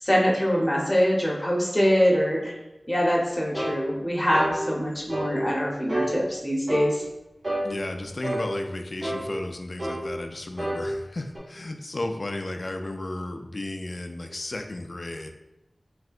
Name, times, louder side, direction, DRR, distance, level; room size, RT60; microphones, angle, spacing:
voice 1, 0.0-2.6 2.9-7.0, equal, 20° left, -4 dB, 0.9 m, -24 dB
sound 1, 3.5-3.8 4.3-4.6 5.1-5.4 5.9-6.1 6.7-6.9 7.4-7.7 8.2-8.5 9.0-9.2 9.8-10.0 10.6-10.8 11.3-11.4, right 1 dB, 60° right, 1.1 m, -29 dB
voice 2, 7.6-15.3, left 2 dB, 65° left, 5 dB, 0.3 m, -34 dB
3.2 x 2.8 x 2.4 m, 0.96 s
wide cardioid pair, 45°, 0 cm